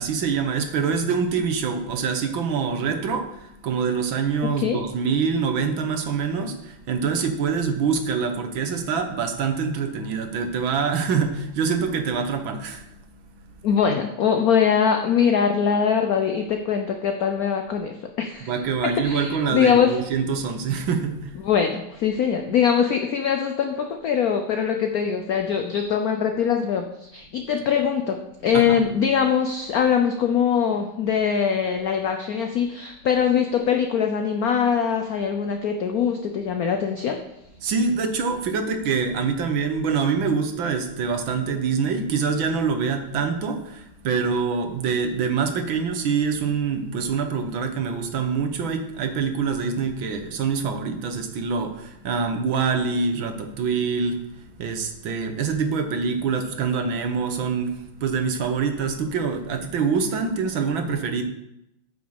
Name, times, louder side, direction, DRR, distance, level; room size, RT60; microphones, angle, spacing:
voice 1, 0.0-13.0 18.4-21.4 28.5-28.8 37.6-61.2, right 5 dB, 65° right, 6 dB, 1.9 m, -25 dB
voice 2, 13.6-18.5 19.0-20.0 21.4-37.2, left 7 dB, 65° left, 5 dB, 0.9 m, -22 dB
9.0 x 6.4 x 7.1 m, 0.85 s
omnidirectional pair, 2.4 m